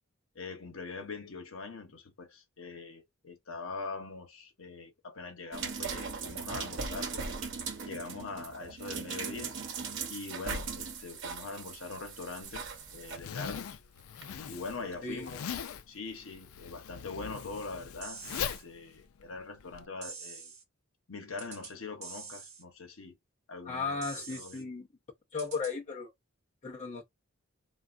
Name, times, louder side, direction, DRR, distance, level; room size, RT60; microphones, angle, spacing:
voice 1, 0.3-7.4 7.9-9.5 10.1-12.6 12.9-13.8 14.5-15.4 15.9-20.5 21.1-23.2 23.5-24.7, left 4 dB, 70° left, 0.9 m, -42 dB
sound 1, 5.5-13.2 14.2-14.3, right 5 dB, 60° right, 0.9 m, -39 dB
Zipper (clothing), 12.4-19.9, left 8 dB, 85° left, 0.4 m, -41 dB
sound 2, 18.0-18.6 20.0-20.6 21.4-21.7 22.0-22.6 24.0-24.6 25.4-25.7, right 5 dB, 35° right, 1.0 m, -45 dB
voice 2, 23.7-24.9 25.3-26.1 26.6-27.0, left 4 dB, 35° left, 0.6 m, -35 dB
3.3 x 2.3 x 2.5 m
head